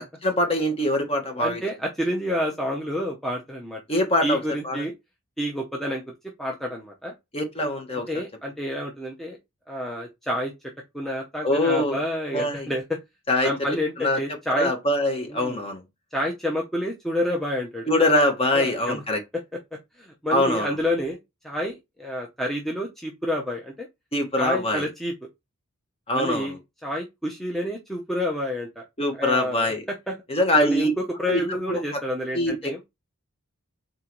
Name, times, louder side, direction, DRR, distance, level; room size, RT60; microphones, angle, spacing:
voice 1, 0.0-1.6 3.9-4.8 7.3-8.1 11.4-12.0 12.3-12.7 13.3-13.5 14.0-14.2 14.6-15.8 17.9-19.2 20.3-20.7 24.1-24.8 26.1-26.5 29.0-29.8 30.3-30.9 31.3-31.4 31.7-31.8 32.3-32.5, left 1 dB, 25° left, 1.0 m, -23 dB
voice 2, 1.4-3.8 4.2-4.9 5.4-6.0 6.4-7.1 7.9-9.4 9.7-13.0 13.4-14.7 15.3-15.6 16.1-17.9 18.5-19.0 19.3-19.6 20.0-21.2 21.4-23.9 24.4-25.3 26.1-28.8 29.1-30.2 30.6-32.8, left 1 dB, ahead, 0.5 m, -29 dB
3.7 x 3.7 x 2.9 m
head